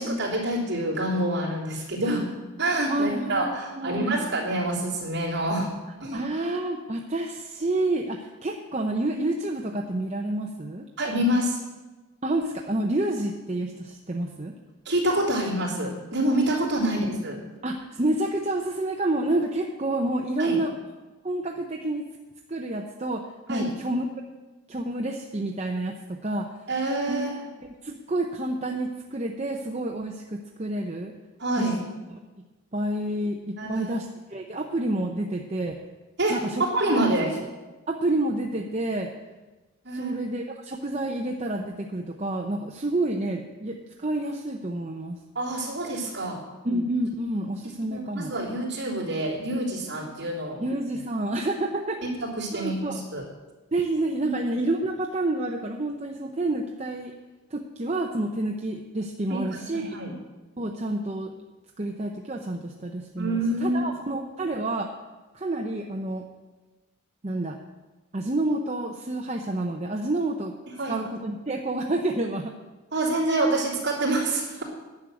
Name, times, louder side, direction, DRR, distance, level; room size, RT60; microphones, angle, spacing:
voice 1, 0.0-2.2 2.6-5.7 6.0-6.3 11.0-11.6 14.8-17.4 20.4-20.6 23.5-23.7 26.7-27.5 31.4-31.8 33.6-33.9 36.2-37.3 39.8-40.2 45.3-46.4 47.9-50.6 52.0-52.1 52.4-53.2 54.2-54.3 59.3-60.1 63.2-63.8 70.8-70.9 72.9-74.6, right 1 dB, 55° right, -5 dB, 3.3 m, -27 dB
voice 2, 2.0-2.3 2.9-3.5 3.8-4.2 6.1-10.9 12.2-14.5 16.8-17.1 17.6-20.7 21.2-22.1 22.5-24.1 24.7-26.5 27.1-27.2 27.8-31.1 31.6-31.7 32.7-34.1 34.3-35.8 36.3-37.0 37.9-39.1 39.9-45.2 46.6-48.3 50.6-52.1 52.5-53.0 53.7-57.1 57.5-59.8 60.6-61.3 61.8-64.9 65.3-66.3 67.2-67.6 68.1-70.5 70.9-72.5, right 2 dB, 30° right, 1 dB, 0.7 m, -29 dB
11.0 x 6.3 x 9.0 m, 1.2 s
head